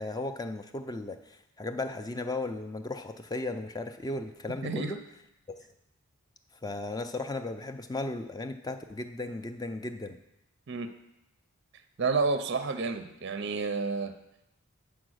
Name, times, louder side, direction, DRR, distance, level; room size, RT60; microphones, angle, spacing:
voice 1, 0.0-5.0 6.6-10.2, left 2 dB, 15° left, 8 dB, 0.3 m, -36 dB
voice 2, 4.6-4.9 10.7-10.9 12.0-14.2, right 4 dB, 50° right, 9 dB, 0.5 m, -30 dB
8.4 x 4.6 x 6.3 m, 0.87 s
head